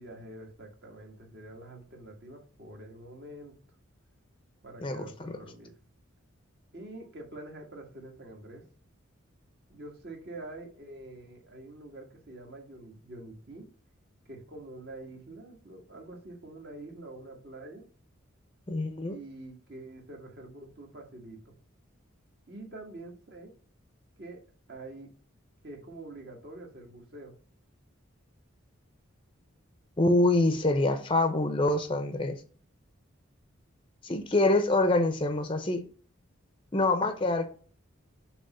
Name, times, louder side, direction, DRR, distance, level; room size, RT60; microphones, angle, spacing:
voice 1, 0.0-3.5 4.6-5.7 6.7-8.6 9.7-13.7 14.3-17.8 19.1-21.5 22.5-23.5 24.2-24.4 24.7-25.1 25.6-27.3, right 2 dB, 50° right, 1.7 m, -46 dB
voice 2, 4.8-5.3 18.7-19.2 30.0-32.4 34.0-35.8 36.7-37.5, left 2 dB, 25° left, 0.6 m, -25 dB
6.8 x 3.0 x 5.5 m
head